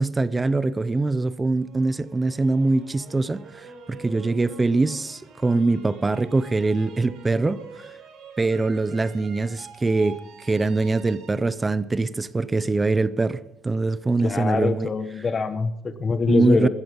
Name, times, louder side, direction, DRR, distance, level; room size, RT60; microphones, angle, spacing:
voice 1, 0.0-3.4 3.9-7.6 8.4-14.9 16.3-16.7, right 3 dB, 15° right, 0.5 m, -23 dB
sound 1, 1.6-12.6, right 5 dB, 70° right, 4.7 m, -46 dB
voice 2, 14.2-16.7, left 4 dB, 25° left, 1.1 m, -24 dB
15.0 x 14.0 x 5.5 m
cardioid pair, 155°, 0 cm